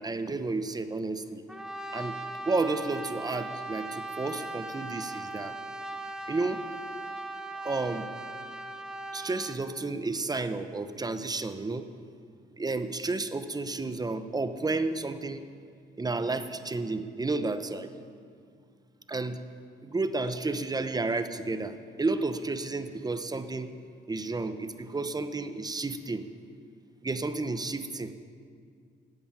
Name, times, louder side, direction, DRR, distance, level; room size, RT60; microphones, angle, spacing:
voice 1, 0.0-1.4 1.9-2.2 2.5-5.6 6.3-6.6 7.6-8.1 9.1-11.9 12.6-15.4 16.0-17.9 19.1-19.4 19.8-23.7 24.1-26.3 27.0-28.1, right 3 dB, 20° right, 11 dB, 0.9 m, -31 dB
Brass instrument, 1.5-9.7, right 2 dB, 5° right, 1.1 m, -39 dB
13.0 x 8.6 x 9.6 m, 2.3 s
cardioid pair, 90°, 20 cm